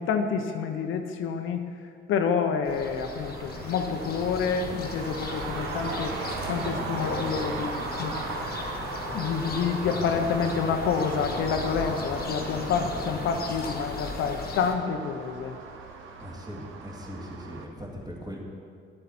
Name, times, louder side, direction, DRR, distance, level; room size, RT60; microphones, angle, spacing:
voice 1, 0.0-1.6 2.1-6.2 6.5-8.6 9.1-15.6, left 6 dB, 85° left, 6 dB, 0.8 m, -28 dB
sound 1, 2.7-14.7, left 3 dB, 50° left, 1.3 m, -36 dB
Traffic noise roadway noise, 2.7-17.6, right 4 dB, 80° right, 0.9 m, -38 dB
voice 2, 16.2-18.4, equal, 20° right, -3 dB, 2.1 m, -40 dB
11.0 x 7.8 x 4.3 m, 2.3 s
cardioid pair, 90°, 20 cm